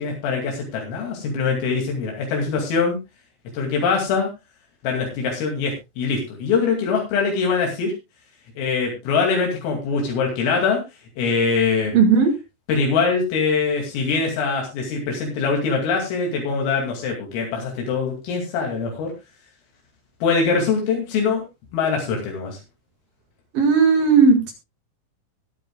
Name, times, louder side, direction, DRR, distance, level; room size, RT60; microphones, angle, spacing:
voice 1, 0.0-3.0 3.5-4.3 4.8-7.9 8.6-10.8 11.2-12.0 12.7-19.1 20.2-21.4 21.7-22.6, left 5 dB, 80° left, 1 dB, 5.1 m, -23 dB
voice 2, 11.9-12.3 23.5-24.5, right 5 dB, 55° right, 5 dB, 2.9 m, -15 dB
22.0 x 9.3 x 2.3 m, 0.24 s
omnidirectional pair, 5.9 m